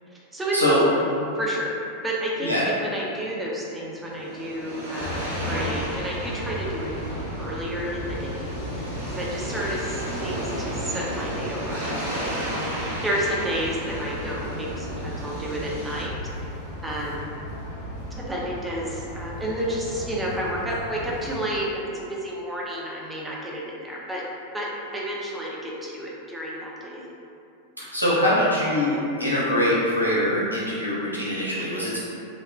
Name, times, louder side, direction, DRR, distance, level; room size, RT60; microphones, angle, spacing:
voice 1, 0.1-1.8 2.0-11.9 12.3-16.1 16.8-17.3 18.2-24.2 24.5-27.1, equal, 10° right, -4 dB, 0.5 m, -31 dB
sound 1, 3.8-16.0, right 1 dB, 65° right, 0.7 m, -34 dB
sound 2, 5.0-21.4, equal, 50° left, 0.7 m, -35 dB
voice 2, 27.9-32.0, left 1 dB, 90° left, -8 dB, 0.6 m, -23 dB
3.1 x 2.1 x 2.5 m, 2.6 s
figure-of-eight pair, 90°, 0 cm